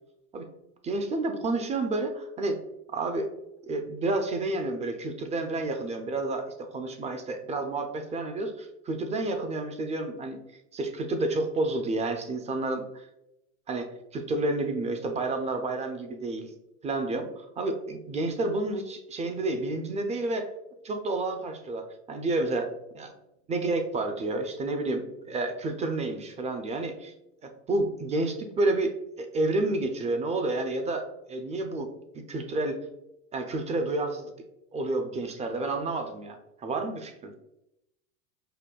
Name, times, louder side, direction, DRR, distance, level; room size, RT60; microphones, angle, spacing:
voice 1, 0.8-2.6 2.9-3.3 3.6-10.4 10.7-12.8 13.7-16.5 16.8-20.5 20.8-23.1 23.5-27.1 27.4-31.9 32.1-32.8 33.3-34.3 34.7-37.3, right 2 dB, 20° right, 6 dB, 0.4 m, -30 dB
5.2 x 2.2 x 2.3 m, 0.87 s
hypercardioid pair, 85°, 40 cm